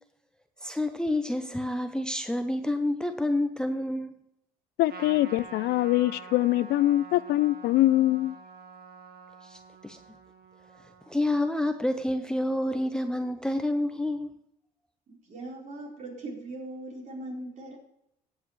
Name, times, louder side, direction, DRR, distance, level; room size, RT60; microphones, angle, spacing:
voice 1, 0.6-4.2 9.4-10.0 11.1-14.4, left 1 dB, 5° left, 0.7 m, -29 dB
voice 2, 4.8-8.3, left 15 dB, 75° left, 0.4 m, -23 dB
Trumpet, 4.9-11.6, right 4 dB, 65° right, 1.7 m, -47 dB
voice 3, 15.1-17.8, right 2 dB, 45° right, 4.3 m, -40 dB
16.0 x 8.2 x 3.2 m
cardioid pair, 110°, 17 cm